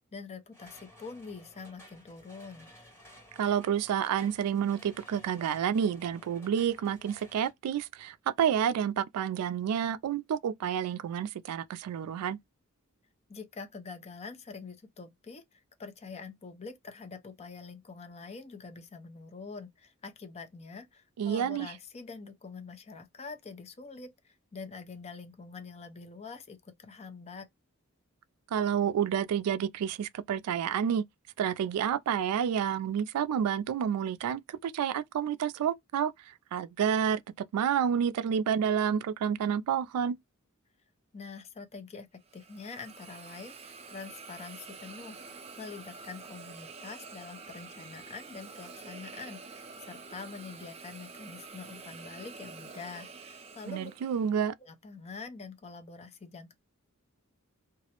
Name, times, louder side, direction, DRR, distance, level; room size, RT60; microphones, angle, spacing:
voice 1, 0.1-2.7 13.3-27.5 41.1-42.1 42.3-45.2 45.6-53.9 54.6-56.5, left 4 dB, 30° left, 0.5 m, -45 dB
sound 1, 0.5-7.5, equal, 10° left, 1.0 m, -55 dB
voice 2, 3.4-12.4 21.2-21.7 28.5-31.0 31.4-36.1 36.5-37.2 37.5-40.2 53.7-54.5, right 8 dB, 90° right, 0.3 m, -29 dB
Hiss, 42.2-54.4, right 4 dB, 30° right, 0.5 m, -48 dB
2.3 x 2.0 x 2.8 m
head